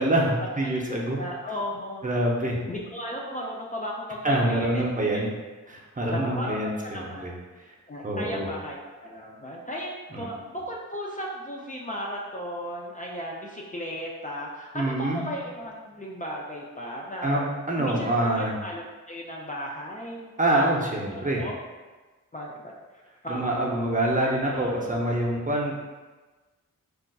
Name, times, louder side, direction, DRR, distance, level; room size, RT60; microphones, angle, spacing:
voice 1, 0.0-1.2 2.0-2.6 4.2-5.3 5.7-7.3 8.0-8.5 10.1-10.3 14.7-15.3 17.2-18.5 20.4-21.4 23.3-25.7, right 1 dB, 25° right, -3 dB, 0.6 m, -26 dB
voice 2, 0.8-2.0 2.7-4.8 6.1-7.3 7.9-17.5 17.8-20.7 21.1-21.6 22.3-22.7 23.2-23.9 24.2-24.7, equal, 25° left, -3 dB, 0.4 m, -35 dB
4.0 x 2.4 x 2.2 m, 1.3 s
wide cardioid pair, 60°, 32 cm